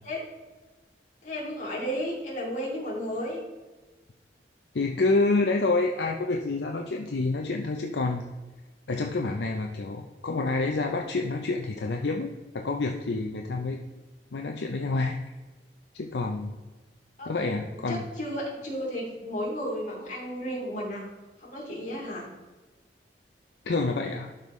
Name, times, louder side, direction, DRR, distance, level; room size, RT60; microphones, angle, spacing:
voice 1, 1.2-3.4 17.2-17.5 17.8-21.1 21.4-22.3, equal, 45° left, -5 dB, 2.8 m, -33 dB
voice 2, 4.7-8.3 8.9-13.8 14.3-15.2 15.9-16.5 17.3-18.0 23.6-24.3, left 3 dB, 70° left, 3 dB, 0.6 m, -28 dB
12.0 x 5.4 x 3.2 m, 1.2 s
head